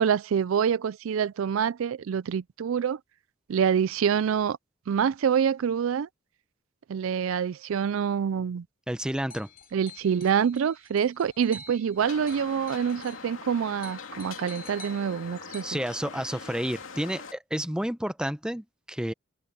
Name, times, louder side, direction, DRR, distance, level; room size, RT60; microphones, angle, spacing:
voice 1, 0.0-3.0 3.5-4.6 4.9-6.1 6.9-8.7 9.7-15.8, right 7 dB, 75° right, 0.4 m, -26 dB
voice 2, 8.9-9.5 15.6-19.1, equal, 5° right, 0.7 m, -30 dB
sound 1, 9.3-13.3 13.6-15.6, left 1 dB, 45° left, 3.0 m, -48 dB
sound 2, 12.0-17.3, left 5 dB, 70° left, 2.7 m, -42 dB
open air
head